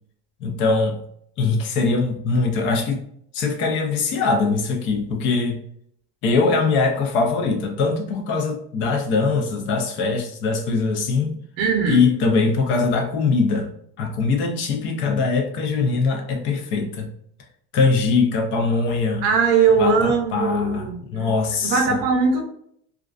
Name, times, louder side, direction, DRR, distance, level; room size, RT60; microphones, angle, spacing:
voice 1, 0.4-1.0 1.4-3.0 3.3-5.6 6.2-11.4 11.9-13.7 14.0-17.1 17.7-19.3 19.8-22.0, left 4 dB, 40° left, 3 dB, 0.4 m, -22 dB
voice 2, 11.6-12.0 19.2-21.3 21.6-22.5, right 5 dB, 50° right, 2 dB, 0.6 m, -20 dB
2.4 x 2.2 x 2.3 m, 0.67 s
cardioid pair, 175°, 33 cm